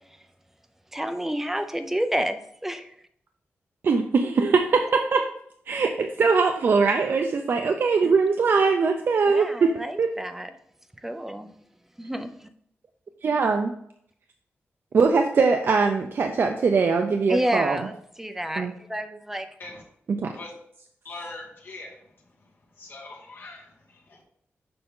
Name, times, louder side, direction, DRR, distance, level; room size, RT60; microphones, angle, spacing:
voice 1, 0.9-2.9 8.0-8.1 9.3-10.5 11.0-11.5 12.0-12.5 17.3-19.5, equal, 5° right, 8 dB, 0.5 m, -29 dB
voice 2, 3.8-5.2 5.7-9.7 10.0-10.1 13.2-13.7 14.9-17.8 18.6-18.7 20.2-20.3, right 4 dB, 55° right, 4 dB, 0.5 m, -21 dB
voice 3, 21.0-22.0 22.4-22.5 22.8-24.2, left 2 dB, 50° left, -2 dB, 2.0 m, -42 dB
6.8 x 5.5 x 3.7 m, 0.70 s
wide cardioid pair, 165°, 5 cm